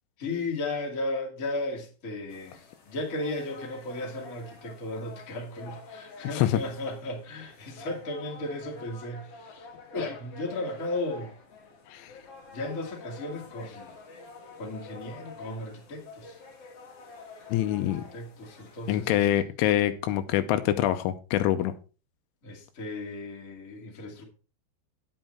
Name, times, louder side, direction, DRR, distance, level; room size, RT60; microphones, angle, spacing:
voice 1, 0.2-11.3 12.5-14.0 14.6-16.4 17.3-17.4 17.7-19.3 22.4-24.2, left 2 dB, 40° left, 1.1 m, -35 dB
sound 1, 2.3-19.4, left 3 dB, 60° left, 1.6 m, -48 dB
voice 2, 17.5-18.0 18.9-21.7, left 12 dB, 90° left, 3.2 m, -25 dB
10.0 x 7.7 x 4.4 m
omnidirectional pair, 5.6 m